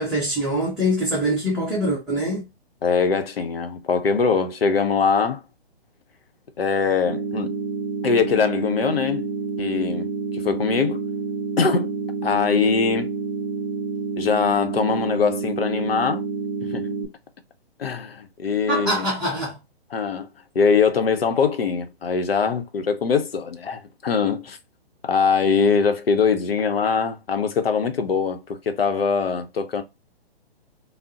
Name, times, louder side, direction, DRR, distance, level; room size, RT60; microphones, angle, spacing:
voice 1, 0.0-2.5 18.7-19.6, equal, ahead, 0.6 m, -24 dB
voice 2, 2.8-5.4 6.6-7.6 8.0-9.3 9.6-11.0 11.6-13.1 14.2-16.2 16.6-16.9 17.8-19.0 19.9-20.3 20.5-24.6 25.0-29.8, left 5 dB, 75° left, 0.7 m, -22 dB
sound 1, 7.1-17.1, right 5 dB, 40° right, 0.5 m, -28 dB
3.5 x 2.0 x 2.5 m
figure-of-eight pair, 130°, 30 cm